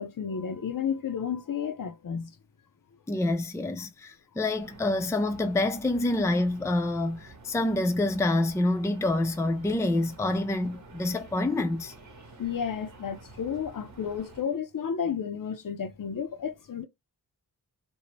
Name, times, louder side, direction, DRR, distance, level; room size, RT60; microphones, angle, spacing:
voice 1, 0.0-2.3 12.4-16.9, left 7 dB, 60° left, 0.5 m, -32 dB
voice 2, 3.1-11.9, left 2 dB, 10° left, 0.4 m, -27 dB
sound 1, 4.6-14.4, right 3 dB, 45° right, 0.9 m, -50 dB
2.7 x 2.0 x 3.0 m
wide cardioid pair, 90°, 38 cm